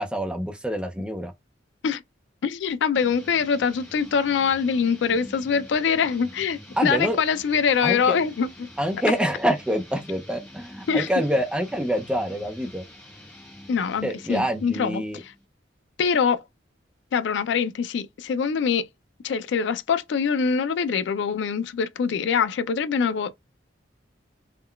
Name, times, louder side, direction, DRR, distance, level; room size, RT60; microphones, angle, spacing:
voice 1, 0.0-1.3 6.8-7.2 7.8-8.2 8.8-12.9 14.0-15.2, equal, 5° right, 0.4 m, -26 dB
voice 2, 2.4-8.5 10.9-11.1 13.7-15.0 16.0-16.4 17.1-18.9 19.2-23.3, left 6 dB, 70° left, 0.3 m, -24 dB
sound 1, 2.9-15.5, left 1 dB, 15° left, 1.1 m, -46 dB
3.6 x 2.2 x 2.2 m
head